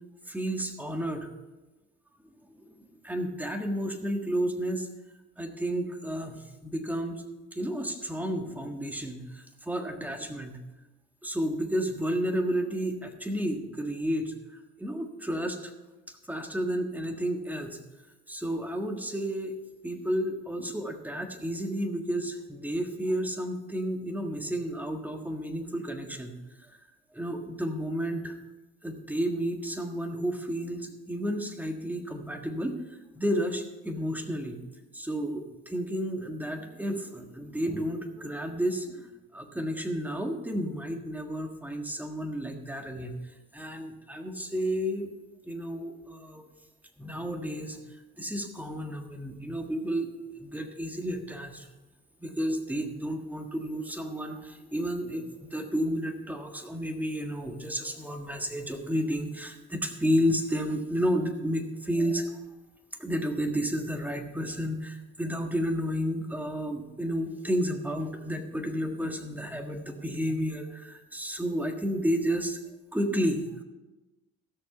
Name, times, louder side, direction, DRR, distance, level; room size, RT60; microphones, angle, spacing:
voice 1, 0.3-1.3 2.6-4.9 5.4-7.2 7.5-10.6 11.2-14.3 14.8-15.7 16.1-17.8 18.3-19.5 19.8-26.4 26.7-26.8 27.1-28.3 28.8-32.8 33.1-34.6 34.9-43.2 43.5-45.1 45.4-46.4 47.0-47.8 48.2-51.7 52.2-62.4 63.0-72.6 72.9-73.6, equal, 5° right, 4 dB, 1.6 m, -31 dB
15.5 x 6.5 x 5.5 m, 1.1 s
cardioid pair, 90°, 30 cm